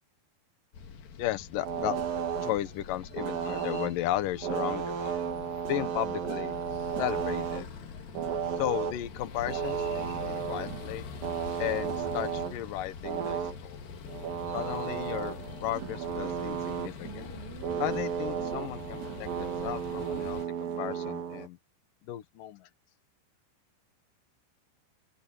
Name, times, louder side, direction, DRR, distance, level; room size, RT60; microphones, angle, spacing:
sound 1, 0.7-20.5, left 6 dB, 55° left, 3.5 m, -44 dB
voice 1, 1.2-2.0 2.4-5.2 5.7-7.7 8.6-11.0 11.6-13.8 14.5-15.4 15.6-17.3 17.8-20.4 20.8-21.6 22.0-22.7, left 13 dB, 90° left, 1.9 m, -35 dB
sound 2, 1.6-2.7 3.0-7.7 8.0-9.0 9.3-12.6 13.0-13.6 14.1-21.5, right 8 dB, 90° right, 5.8 m, -34 dB
open air
omnidirectional pair, 5.7 m